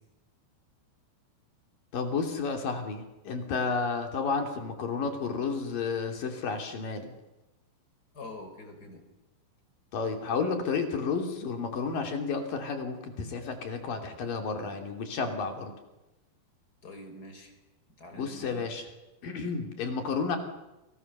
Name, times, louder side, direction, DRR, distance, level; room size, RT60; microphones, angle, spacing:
voice 1, 1.9-7.1 9.9-15.7 18.1-18.9 19.2-20.4, left 5 dB, 55° left, 4 dB, 4.4 m, -31 dB
voice 2, 8.1-9.0 16.8-17.5 18.0-18.7, left 2 dB, 20° left, 7 dB, 4.3 m, -45 dB
29.5 x 26.0 x 6.9 m, 1.0 s
omnidirectional pair, 4.9 m